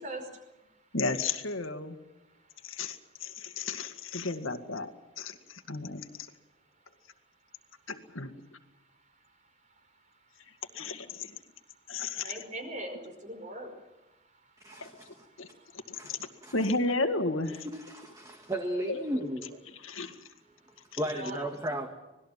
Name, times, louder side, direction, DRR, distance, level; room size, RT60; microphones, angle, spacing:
voice 1, 0.0-1.0 2.1-3.7 5.5-5.6 6.3-7.7 8.7-10.6 11.3-16.5 18.3-18.5 19.9-21.5, right 1 dB, 40° right, 6 dB, 5.2 m, -47 dB
voice 2, 0.9-2.0 2.6-4.9 5.2-6.0 7.9-8.3 10.7-11.3 11.9-12.3 14.8-14.9 15.4-15.5 15.7-17.7 18.9-19.0 19.8-20.1, left 3 dB, 85° left, 7 dB, 2.1 m, -33 dB
voice 3, 14.6-15.2 15.9-16.2 16.4-16.6 17.7-19.6 21.0-21.9, right 1 dB, 15° right, 4 dB, 1.7 m, -35 dB
26.0 x 19.5 x 7.5 m, 1.0 s
head